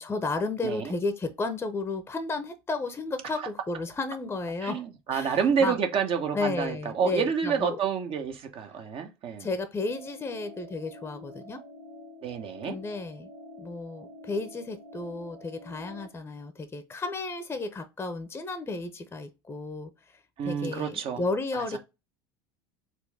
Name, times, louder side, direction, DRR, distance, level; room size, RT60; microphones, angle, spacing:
voice 1, 0.0-4.8 5.1-5.7 6.3-7.8 9.4-11.6 12.7-13.3 13.6-19.9 20.4-21.8, left 3 dB, 15° left, 0.8 m, -33 dB
voice 2, 0.6-0.9 3.4-3.5 4.6-9.5 12.2-12.8 20.4-21.2 21.5-21.8, right 7 dB, 45° right, 1.0 m, -29 dB
sound 1, 9.9-16.1, left 1 dB, 80° right, 2.1 m, -47 dB
4.4 x 2.5 x 3.4 m
hypercardioid pair, 75°, 13 cm